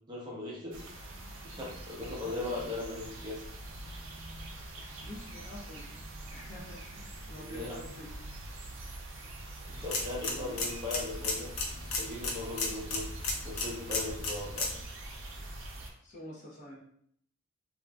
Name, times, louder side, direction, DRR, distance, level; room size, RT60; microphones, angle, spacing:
voice 1, 0.1-0.8 1.4-3.4 7.4-7.8 9.7-11.5 12.0-13.0 13.4-14.7, left 2 dB, 20° right, -4 dB, 0.6 m, -38 dB
sound 1, 0.7-15.9, right 1 dB, 65° right, 0.5 m, -45 dB
voice 2, 5.0-5.9 6.3-8.1 10.2-10.6 16.0-16.8, equal, 35° left, -4 dB, 0.7 m, -47 dB
sound 2, 9.7-14.8, left 3 dB, 75° left, 0.6 m, -35 dB
2.9 x 2.5 x 2.2 m, 0.66 s
head